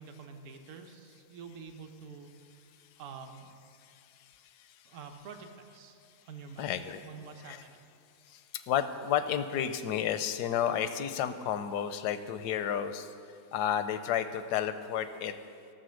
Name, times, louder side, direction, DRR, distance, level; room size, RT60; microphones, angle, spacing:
voice 1, 0.0-3.6 4.8-6.7 7.0-7.8, right 5 dB, 55° right, 5 dB, 1.1 m, -48 dB
voice 2, 3.8-4.8 6.6-7.1 7.4-7.6 8.3-13.1 13.5-15.3, left 9 dB, 80° left, 11 dB, 1.2 m, -32 dB
14.0 x 6.5 x 6.3 m, 2.4 s
omnidirectional pair, 1.7 m